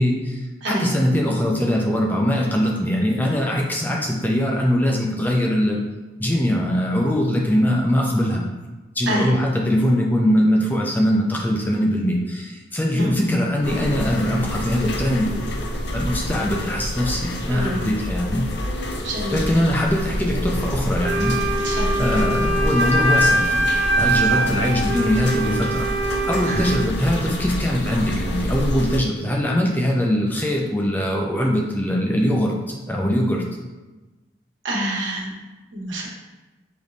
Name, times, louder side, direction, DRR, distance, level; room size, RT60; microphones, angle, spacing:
voice 1, 0.0-5.8 6.2-8.4 9.0-15.5 15.9-18.5 19.3-21.4 22.0-25.9 26.3-32.5 32.9-33.4, equal, 10° left, -1 dB, 0.4 m, -21 dB
sound 1, 13.6-29.0, left 1 dB, 65° left, 0.5 m, -28 dB
voice 2, 17.5-17.9 19.0-19.5 21.6-21.9 24.3-24.4 26.4-26.7 34.6-35.3 35.7-36.1, right 1 dB, 90° right, -4 dB, 1.2 m, -27 dB
Wind instrument woodwind instrument, 21.0-26.9, right 1 dB, 65° right, 0.4 m, -22 dB
5.1 x 3.1 x 2.6 m, 1.2 s
head